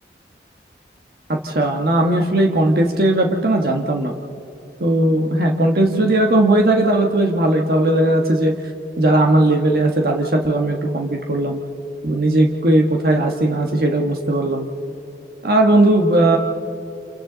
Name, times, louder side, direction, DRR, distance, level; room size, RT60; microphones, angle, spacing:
voice 1, 1.3-4.1 4.8-8.5 9.0-11.6 12.0-14.7 15.4-16.4, right 1 dB, 55° right, 2 dB, 1.3 m, -17 dB
29.5 x 27.5 x 3.9 m, 2.8 s
head